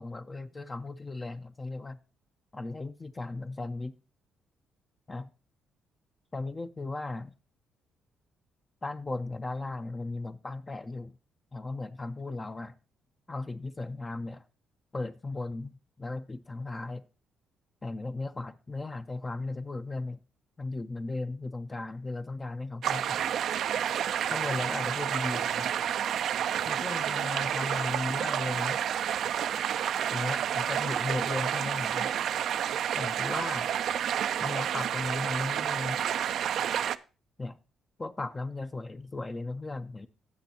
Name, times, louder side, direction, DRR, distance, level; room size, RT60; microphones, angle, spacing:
voice 1, 0.0-2.0 2.5-3.9 5.1-5.3 6.3-7.3 8.8-11.1 11.5-12.7 13.3-14.4 14.9-17.0 17.8-20.2 20.6-23.4 24.3-25.7 26.6-28.8 30.1-32.2 32.9-33.8 34.4-36.0 37.4-37.6 38.0-40.1, left 2 dB, 25° left, 0.6 m, -36 dB
sound 1, 22.8-37.0, right 9 dB, 70° right, 0.4 m, -30 dB
16.0 x 6.1 x 2.8 m
cardioid pair, 75°, 0 cm